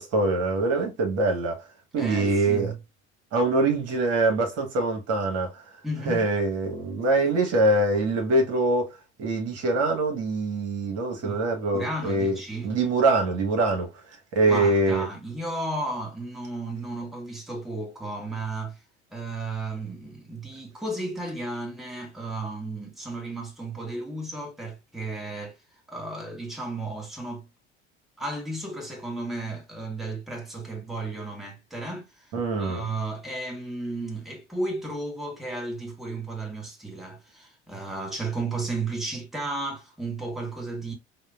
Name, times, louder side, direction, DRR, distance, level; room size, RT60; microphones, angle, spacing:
voice 1, 0.0-1.6 1.9-2.7 3.3-5.6 6.1-12.3 12.6-13.9 14.3-15.1 32.3-32.8, right 2 dB, 45° right, 1.2 m, -24 dB
voice 2, 2.0-2.8 5.8-6.3 11.2-11.4 11.7-12.7 14.5-18.8 19.1-25.6 25.9-27.5 28.2-32.3 32.6-40.9, right 2 dB, ahead, 1.1 m, -33 dB
4.8 x 2.2 x 2.4 m
figure-of-eight pair, 70°, 35 cm